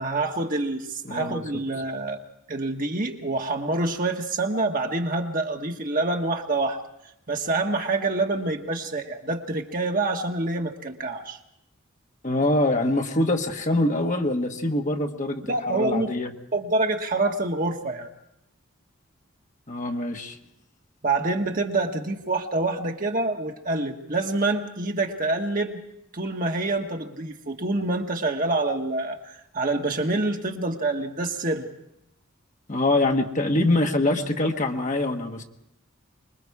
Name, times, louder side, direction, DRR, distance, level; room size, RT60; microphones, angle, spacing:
voice 1, 0.0-2.2 2.5-6.8 7.3-11.4 15.5-16.1 16.5-18.1 21.0-25.8 26.1-31.7, right 2 dB, 40° right, 3 dB, 1.5 m, -26 dB
voice 2, 1.0-1.4 12.2-16.3 19.7-20.4 32.7-35.4, left 2 dB, 35° left, 3 dB, 1.4 m, -24 dB
25.5 x 21.5 x 4.8 m, 0.84 s
head